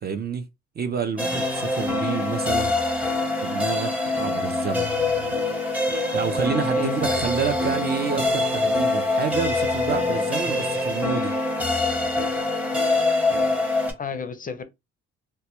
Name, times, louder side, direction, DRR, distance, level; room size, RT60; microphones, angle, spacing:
voice 1, 0.0-0.5 0.8-2.7 3.4-5.3 6.1-11.3, right 6 dB, 35° right, 0.4 m, -29 dB
sound 1, 1.2-13.9, left 2 dB, 5° right, 0.7 m, -24 dB
voice 2, 6.7-7.3 13.9-14.6, left 5 dB, 30° left, 0.4 m, -32 dB
2.1 x 2.1 x 2.9 m
cardioid pair, 90°, 30 cm